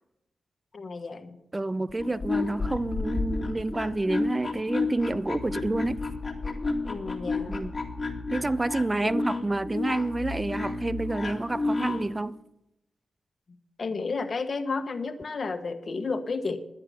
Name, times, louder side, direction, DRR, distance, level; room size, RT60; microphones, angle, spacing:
voice 1, 0.7-1.4 6.9-7.6 9.0-9.2 13.8-16.6, left 4 dB, 55° left, 1.2 m, -32 dB
voice 2, 1.5-6.0 7.5-7.7 8.3-12.4, right 2 dB, 25° right, 0.5 m, -29 dB
sound 1, 1.9-12.1, left 3 dB, 35° left, 2.0 m, -31 dB
11.0 x 9.6 x 7.2 m
cardioid pair, 50°, 0 cm